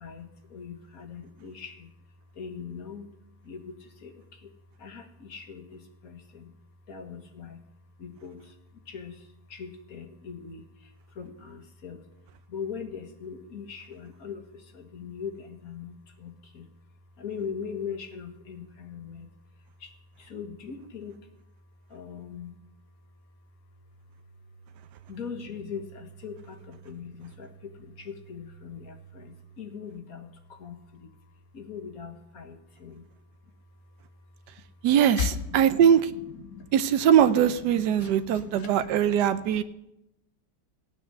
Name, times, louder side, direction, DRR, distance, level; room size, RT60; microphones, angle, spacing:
voice 1, 0.0-1.9 2.4-3.0 3.5-3.7 4.0-4.1 4.8-6.5 6.9-7.6 8.0-8.4 8.9-9.1 9.5-10.6 11.2-12.0 12.5-14.4 14.7-16.7 17.2-19.3 20.3-21.1 21.9-22.5 25.1-27.5 27.8-30.8 31.5-33.0 35.2-36.7 37.2-39.6, left 6 dB, 55° left, 6 dB, 1.8 m, -40 dB
voice 2, 34.8-36.1 36.7-39.6, right 9 dB, 75° right, 11 dB, 1.3 m, -21 dB
15.5 x 9.2 x 6.7 m, 0.87 s
omnidirectional pair, 1.9 m